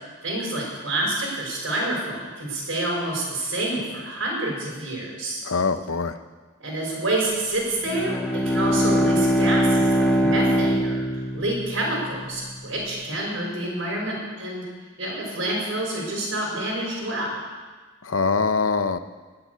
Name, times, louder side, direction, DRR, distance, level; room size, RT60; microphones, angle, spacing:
voice 1, 0.2-5.4 6.6-8.1 8.5-14.6 15.0-17.4, right 1 dB, 65° right, -3 dB, 5.6 m, -28 dB
voice 2, 5.4-6.2 18.0-19.0, left 4 dB, 75° left, 11 dB, 0.8 m, -23 dB
Bowed string instrument, 7.8-12.4, equal, 5° left, 1.1 m, -22 dB
18.5 x 7.1 x 8.2 m, 1.4 s
head